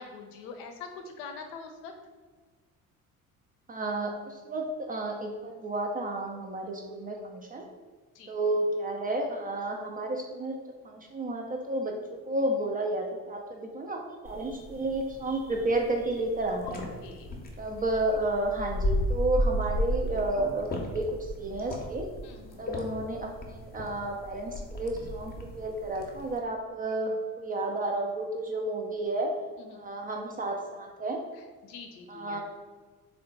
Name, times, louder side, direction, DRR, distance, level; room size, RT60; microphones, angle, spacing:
voice 1, 0.0-1.9 8.2-8.3 17.0-17.3 22.2-22.6 29.7-29.8 31.6-32.4, left 5 dB, 65° left, 4 dB, 0.6 m, -44 dB
voice 2, 3.7-7.7 8.3-10.6 10.8-16.8 17.6-22.0 22.6-29.3 29.7-31.2 32.1-32.4, right 2 dB, 20° right, 1 dB, 0.3 m, -31 dB
sound 1, 14.2-26.4, left 1 dB, 20° left, 0.7 m, -34 dB
3.6 x 2.2 x 3.7 m, 1.4 s
figure-of-eight pair, 50°, 45 cm